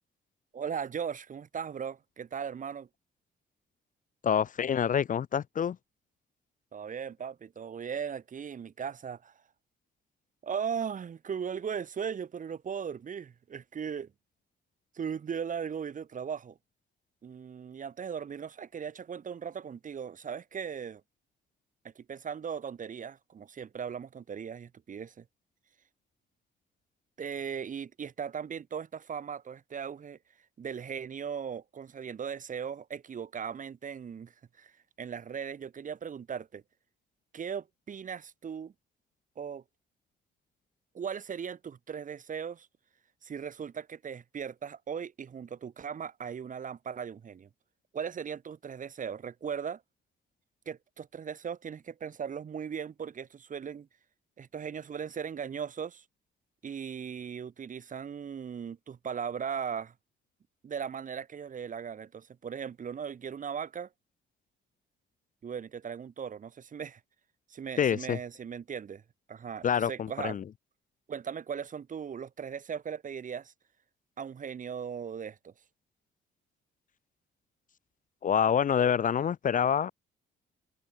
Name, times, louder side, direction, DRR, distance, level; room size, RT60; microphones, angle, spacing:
voice 1, 0.5-2.9 6.7-9.3 10.4-14.1 14.9-16.6 17.2-21.0 21.9-25.2 27.2-30.2 30.6-34.7 35.0-36.6 37.3-38.7 39.4-39.6 40.9-42.7 43.2-47.5 47.9-49.8 50.7-53.9 54.4-56.0 56.6-59.9 60.6-63.9 65.4-67.0 67.5-69.0 69.3-70.4 71.1-73.5 74.2-75.5, right 7 dB, 40° right, 1.0 m, -38 dB
voice 2, 4.2-5.8 67.8-68.2 69.6-70.4 78.2-79.9, left 8 dB, 40° left, 0.5 m, -27 dB
open air
cardioid pair, 90°, 20 cm